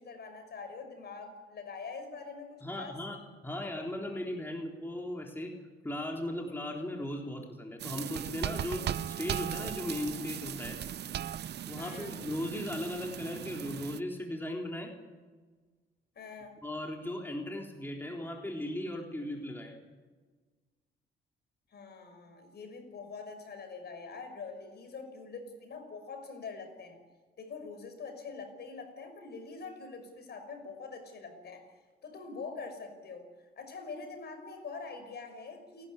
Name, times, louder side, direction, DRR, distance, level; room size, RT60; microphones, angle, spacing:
voice 1, 0.0-3.0 11.8-12.1 16.2-16.5 21.7-27.0 27.4-31.7 32.0-33.3 33.6-35.9, left 4 dB, 55° left, 6 dB, 6.1 m, -44 dB
voice 2, 2.6-3.2 3.4-5.5 5.8-10.8 11.7-14.9 16.6-19.7, left 1 dB, 10° left, 0 dB, 3.8 m, -37 dB
sound 1, 7.8-14.0, right 10 dB, 55° right, 0.7 m, -38 dB
28.5 x 12.5 x 9.8 m, 1.4 s
cardioid pair, 90°, 20 cm